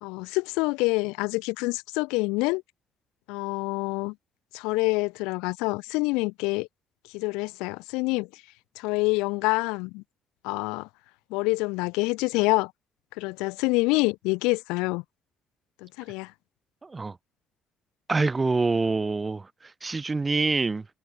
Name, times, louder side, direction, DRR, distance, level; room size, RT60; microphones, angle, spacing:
voice 1, 0.0-2.6 3.3-4.1 4.5-6.7 7.1-8.4 8.8-10.0 10.4-10.9 11.3-12.7 13.2-15.0 15.8-16.3, left 26 dB, 85° left, 0.3 m, -26 dB
voice 2, 16.8-17.2 18.1-20.9, right 3 dB, 25° right, 0.9 m, -26 dB
supercardioid pair, 75°, 0 cm